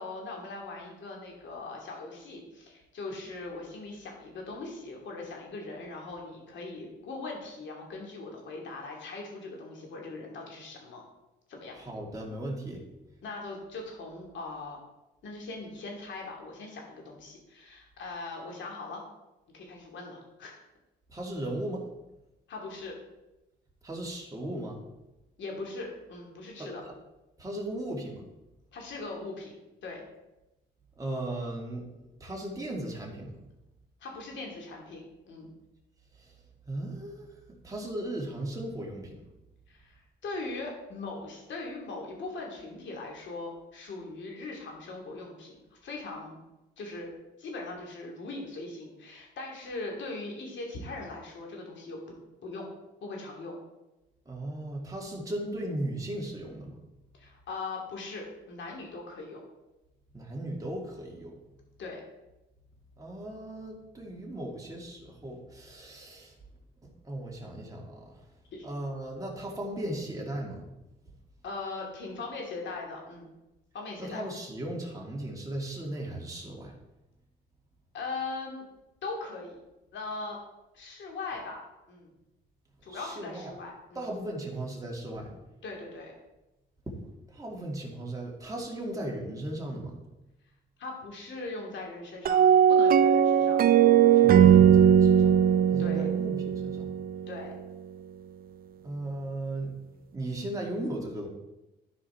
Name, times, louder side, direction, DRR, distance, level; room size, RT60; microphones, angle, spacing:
voice 1, 0.0-11.0 11.5-11.7 13.2-14.8 15.2-19.0 19.5-20.6 22.5-22.9 25.4-26.8 28.7-30.0 34.0-35.5 39.7-46.3 46.8-47.1 47.4-52.0 52.4-52.7 53.0-53.6 57.2-59.4 61.8-62.0 68.5-68.7 71.4-73.3 73.7-74.2 77.9-78.6 79.0-79.6 79.9-80.4 80.7-81.6 81.9-82.1 82.8-84.0 85.6-86.1 90.8-94.0 95.8-96.0 97.3-97.5, left 3 dB, 70° left, 0 dB, 2.6 m, -40 dB
voice 2, 11.7-12.8 21.1-21.8 23.8-24.8 26.6-26.7 27.4-28.2 31.0-31.9 32.2-33.3 36.2-36.3 36.7-37.3 37.6-39.2 54.3-56.8 60.1-61.4 63.0-66.3 66.8-68.2 68.6-70.7 74.0-76.7 82.9-83.5 83.9-85.3 86.9-87.0 87.3-90.0 94.2-95.4 95.7-96.9 98.8-99.8 100.1-101.3, right 1 dB, 15° right, -2 dB, 2.5 m, -36 dB
sound 1, 92.3-97.4, right 9 dB, 50° right, 0.4 m, -20 dB
12.0 x 5.0 x 4.4 m, 0.97 s
cardioid pair, 90°, 20 cm